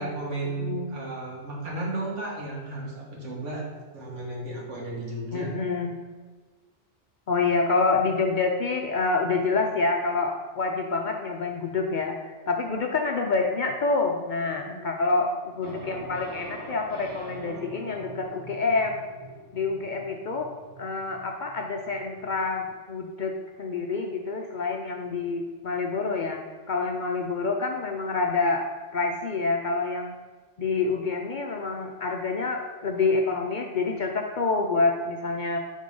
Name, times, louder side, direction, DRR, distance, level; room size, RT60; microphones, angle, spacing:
voice 1, 0.0-5.5 14.4-14.8, right 2 dB, 90° right, -3 dB, 1.7 m, -34 dB
voice 2, 0.6-0.9 5.3-6.0 7.3-19.0 19.5-20.5 20.8-26.4 26.7-28.6 28.9-30.1 30.6-35.6, left 3 dB, 55° left, 2 dB, 0.5 m, -27 dB
sound 1, 15.6-22.6, right 2 dB, 75° right, 1.2 m, -44 dB
5.1 x 3.6 x 5.3 m, 1.3 s
omnidirectional pair, 1.2 m